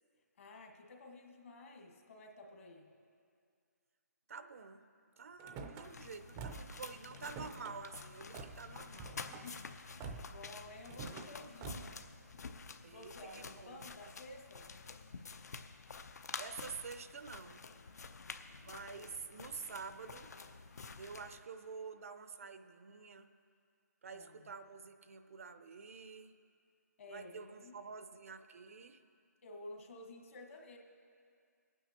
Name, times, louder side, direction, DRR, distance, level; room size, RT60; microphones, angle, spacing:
voice 1, 0.4-2.9 9.3-12.0 12.8-14.7 24.1-24.5 27.0-27.8 29.4-30.8, left 2 dB, 50° left, 1 dB, 1.6 m, -53 dB
voice 2, 4.3-4.9 5.2-9.2 12.8-13.8 16.4-17.6 18.6-20.4 21.0-23.3 24.0-26.4 27.1-29.1, right 5 dB, 55° right, 10 dB, 0.6 m, -49 dB
Car / Slam, 5.4-5.9 6.3-6.8 7.1-7.7 8.3-8.6 9.0-9.5 10.0-10.4 10.9-11.3 11.6-12.0, right 4 dB, 15° right, 0.5 m, -46 dB
sound 1, 5.8-21.4, left 4 dB, 70° left, 0.7 m, -50 dB
22.0 x 9.1 x 2.9 m, 2.3 s
hypercardioid pair, 165°, 9 cm